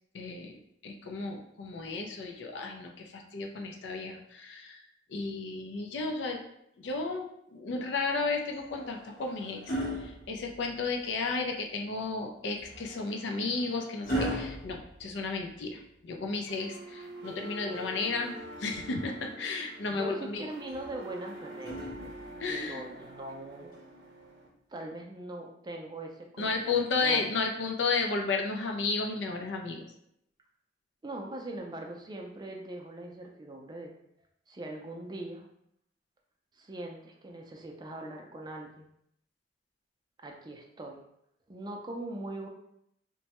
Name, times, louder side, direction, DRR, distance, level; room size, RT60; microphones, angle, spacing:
voice 1, 0.1-0.6 0.8-4.8 5.1-6.4 6.8-9.7 10.0-20.5 22.4-22.8 26.4-29.8, left 3 dB, 80° left, 3 dB, 0.4 m, -33 dB
sound 1, 8.5-11.0 12.6-15.8 17.5-18.7 20.7-22.5 23.7-23.9, equal, 50° left, 0.8 m, -39 dB
sound 2, 16.5-24.5, right 1 dB, 80° right, 0.6 m, -46 dB
voice 2, 19.9-22.1 22.5-23.7 24.7-27.2 31.0-33.9 34.5-35.5 36.5-38.9 40.2-41.0 41.5-42.5, right 1 dB, 25° right, 1 dB, 0.4 m, -41 dB
3.1 x 2.2 x 2.8 m, 0.75 s
head